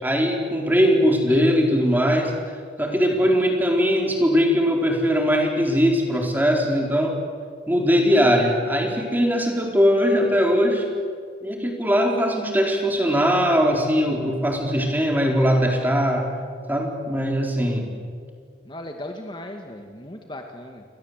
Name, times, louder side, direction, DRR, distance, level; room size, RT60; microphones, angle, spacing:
voice 1, 0.0-2.3 2.8-7.1 7.7-10.9 11.4-16.3 16.7-17.9, equal, 10° right, 1 dB, 4.3 m, -20 dB
voice 2, 18.6-20.8, left 1 dB, 25° left, 3 dB, 2.0 m, -37 dB
29.5 x 24.0 x 8.3 m, 2.1 s
head